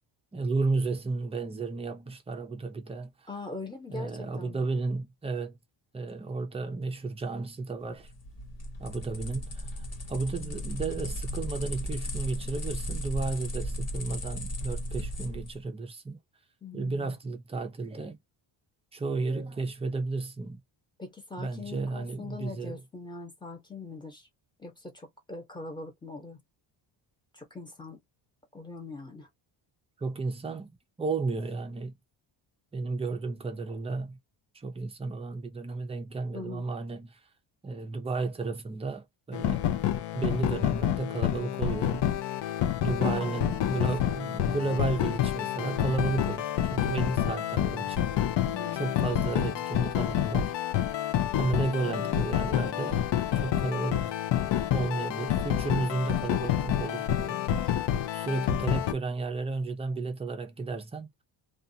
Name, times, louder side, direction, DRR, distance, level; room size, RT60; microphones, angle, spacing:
voice 1, 0.3-3.1 3.9-5.6 5.9-8.1 8.8-16.2 16.7-18.2 18.9-20.6 21.4-22.8 30.0-30.7 31.0-31.9 32.7-34.2 34.5-37.2 37.6-39.7 40.1-42.1 42.8-48.1 48.8-50.5 51.4-53.0 53.4-54.1 54.7-57.4 58.1-61.1, right 3 dB, 15° right, 0.5 m, -33 dB
voice 2, 3.3-4.7 16.6-17.2 21.0-24.3 24.6-26.4 27.3-28.0 28.5-29.3 36.3-36.7 43.0-43.9 48.5-49.0 51.8-52.3 57.2-57.7 58.0-58.1, left 3 dB, 10° left, 0.9 m, -41 dB
sound 1, 7.9-15.6, equal, 30° left, 1.0 m, -36 dB
sound 2, 39.3-58.9, left 11 dB, 60° left, 0.6 m, -28 dB
2.4 x 2.4 x 2.7 m
cardioid pair, 170°, 48 cm